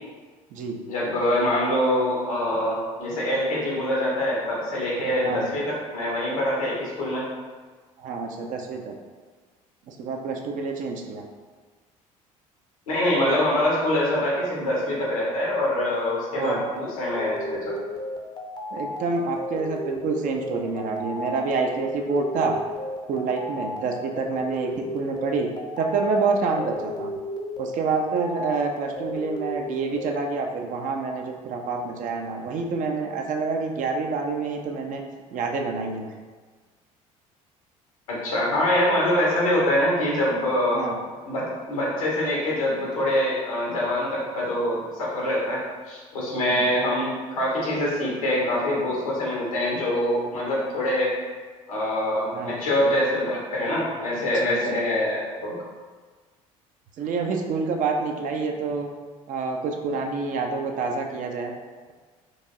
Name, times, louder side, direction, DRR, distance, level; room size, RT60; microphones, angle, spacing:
voice 1, 0.9-7.2 12.9-17.8 38.1-40.8 41.3-51.1 51.7-55.6, left 1 dB, 80° left, -5 dB, 1.1 m, -24 dB
voice 2, 8.0-8.9 9.9-11.2 16.3-16.6 18.7-22.6 23.1-25.5 25.8-27.1 27.6-35.0 35.3-36.1 40.7-41.0 46.4-46.6 52.3-52.6 54.2-54.8 57.0-58.9 59.3-61.5, right 4 dB, 45° right, 3 dB, 0.5 m, -27 dB
sound 1, 16.6-30.1, left 1 dB, 25° left, 0.6 m, -34 dB
4.7 x 2.6 x 2.6 m, 1.4 s
figure-of-eight pair, 55°, 18 cm